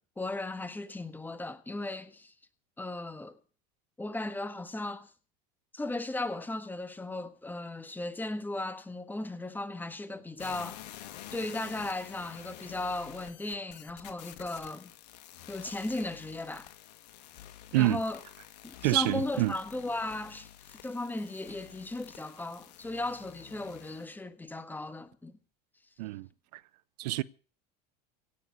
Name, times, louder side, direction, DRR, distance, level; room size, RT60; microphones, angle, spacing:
voice 1, 0.2-2.3 2.8-3.4 4.0-5.1 5.7-10.9 11.3-14.9 15.5-16.7 17.7-18.2 18.6-25.3, left 2 dB, 10° left, 1.6 m, -36 dB
sound 1, 10.4-24.1, left 12 dB, 75° left, 2.1 m, -49 dB
voice 2, 18.8-19.5 26.0-26.6 27.0-27.2, right 18 dB, 75° right, 0.7 m, -27 dB
17.0 x 7.2 x 9.5 m
supercardioid pair, 105°, 21 cm